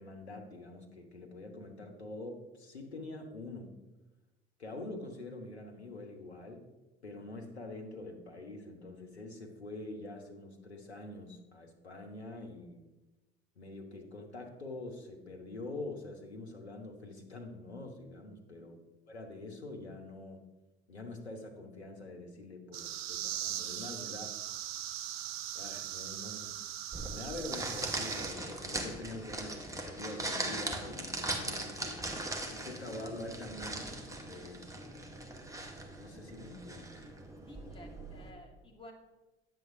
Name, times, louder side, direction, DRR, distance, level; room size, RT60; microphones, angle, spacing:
voice 1, 0.0-3.7 4.6-6.6 7.0-12.8 13.6-18.8 19.1-20.5 20.9-24.4 25.5-26.5 27.1-32.0 32.4-34.6 36.0-37.0, left 2 dB, 90° left, 3 dB, 0.8 m, -45 dB
voice 2, 18.3-18.8 34.4-34.9 36.1-36.2 37.5-38.9, equal, 15° left, -1 dB, 1.7 m, -55 dB
sound 1, 22.7-28.3, right 12 dB, 70° right, 0.5 m, -40 dB
sound 2, 26.9-38.3, right 1 dB, 10° right, 1.1 m, -40 dB
9.1 x 7.3 x 2.6 m, 1.1 s
figure-of-eight pair, 65°, 32 cm